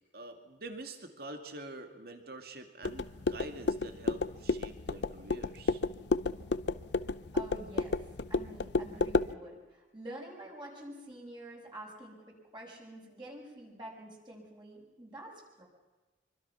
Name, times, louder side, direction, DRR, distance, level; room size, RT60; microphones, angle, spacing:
voice 1, 0.1-5.8, right 2 dB, 55° right, 5 dB, 2.4 m, -46 dB
sound 1, 2.8-9.3, left 3 dB, 70° left, 0.7 m, -32 dB
voice 2, 7.0-8.0 8.3-15.6, right 1 dB, 25° right, -2 dB, 6.2 m, -47 dB
25.0 x 24.5 x 5.9 m, 1.2 s
head